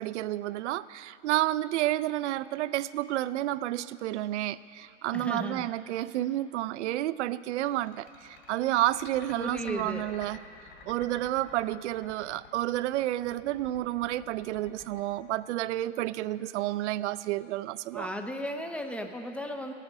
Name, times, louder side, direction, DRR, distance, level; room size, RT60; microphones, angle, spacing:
voice 1, 0.0-10.4 10.9-18.1, right 14 dB, 65° right, 17 dB, 0.5 m, -30 dB
voice 2, 5.1-5.7 9.4-10.1 17.9-19.7, equal, 5° left, 5 dB, 0.5 m, -35 dB
sound 1, 7.4-16.1, left 5 dB, 50° left, 3.1 m, -51 dB
15.5 x 9.0 x 6.1 m, 2.5 s
hypercardioid pair, 125°, 37 cm